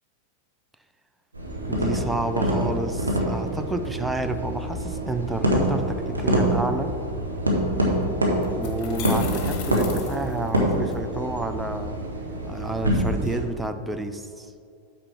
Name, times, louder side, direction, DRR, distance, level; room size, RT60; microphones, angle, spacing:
sound 1, 1.3-13.4, right 1 dB, 80° right, 1.4 m, -26 dB
voice 1, 1.7-7.0 8.6-12.0 12.5-14.5, right 2 dB, 5° right, 8 dB, 0.5 m, -30 dB
sound 2, 7.8-7.9 8.4-10.9, left 7 dB, 40° left, 1.0 m, -38 dB
8.7 x 5.6 x 4.4 m, 2.4 s
figure-of-eight pair, 90°, 0 cm